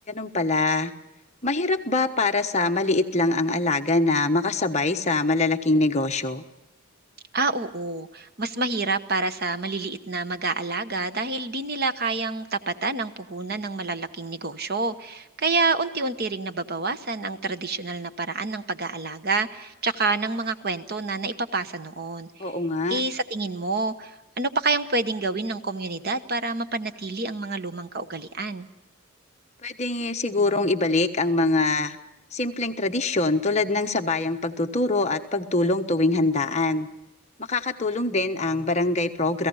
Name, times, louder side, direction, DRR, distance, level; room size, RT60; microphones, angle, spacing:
voice 1, 0.1-0.9 1.4-6.4 22.4-23.0 29.6-32.0 32.3-36.9 37.5-39.5, left 2 dB, 30° left, 5 dB, 1.2 m, -24 dB
voice 2, 7.3-22.5 22.9-28.7, right 3 dB, 45° right, 10 dB, 1.1 m, -28 dB
29.5 x 17.5 x 5.6 m, 0.96 s
head